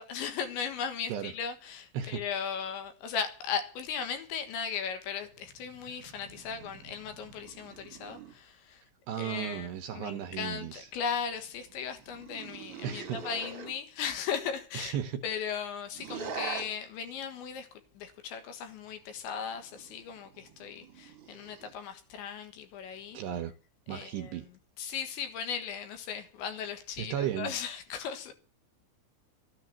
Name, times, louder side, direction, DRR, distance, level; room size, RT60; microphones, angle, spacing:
voice 1, 0.0-8.8 9.2-15.0 15.2-17.7 18.0-23.2 23.9-24.4 24.8-28.3, left 7 dB, 75° left, 3.7 m, -37 dB
sound 1, 5.2-8.4 10.9-13.7 15.9-16.7 18.8-21.8 22.9-23.4, right 6 dB, 50° right, 1.7 m, -45 dB
voice 2, 9.1-10.9 12.8-13.2 14.7-15.2 23.1-23.5 23.9-24.5 27.0-27.5, right 10 dB, 80° right, 2.5 m, -35 dB
13.5 x 9.9 x 7.4 m
omnidirectional pair, 5.6 m